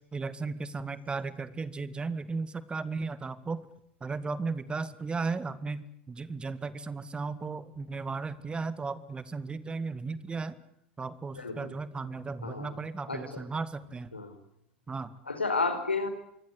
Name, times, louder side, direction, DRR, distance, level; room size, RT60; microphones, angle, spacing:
voice 1, 0.1-3.7 4.0-10.6 11.0-14.1 14.9-15.1, right 4 dB, 15° right, 15 dB, 2.0 m, -35 dB
voice 2, 11.3-11.7 12.4-12.7 13.1-13.2 14.1-14.4 15.3-16.1, left 3 dB, 85° left, 8 dB, 4.8 m, -31 dB
26.0 x 23.5 x 8.3 m, 0.77 s
figure-of-eight pair, 85°, 6 cm